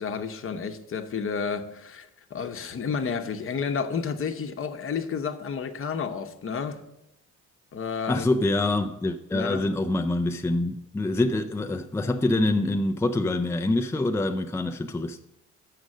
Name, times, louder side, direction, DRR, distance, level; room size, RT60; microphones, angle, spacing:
voice 1, 0.0-6.8 7.7-8.4 9.3-9.7, left 6 dB, 45° left, 0.9 m, -31 dB
voice 2, 8.1-15.2, left 2 dB, 10° left, 0.4 m, -25 dB
6.6 x 6.2 x 6.5 m
cardioid pair, 90°, 30 cm